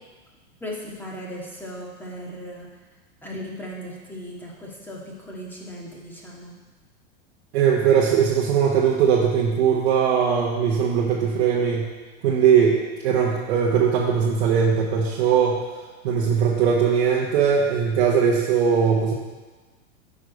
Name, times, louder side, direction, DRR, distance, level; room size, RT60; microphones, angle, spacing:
voice 1, 0.6-2.7 3.2-6.6, equal, 5° left, -4 dB, 1.9 m, -37 dB
voice 2, 7.5-11.9 12.2-12.8 13.0-15.6 16.0-19.1, right 7 dB, 65° right, -3 dB, 1.3 m, -20 dB
9.2 x 5.1 x 5.3 m, 1.3 s
hypercardioid pair, 110°, 35 cm